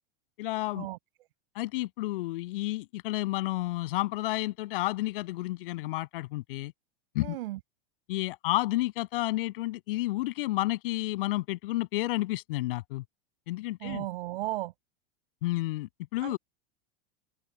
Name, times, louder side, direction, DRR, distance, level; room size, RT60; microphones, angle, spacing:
voice 1, 0.4-0.9 1.5-6.7 7.1-7.4 8.1-13.0 13.5-14.1 15.4-16.4, left 18 dB, 60° left, 7.6 m, -31 dB
voice 2, 7.2-7.6 13.8-14.7 16.2-16.4, right 17 dB, 65° right, 5.5 m, -35 dB
supercardioid pair, 175°, 31 cm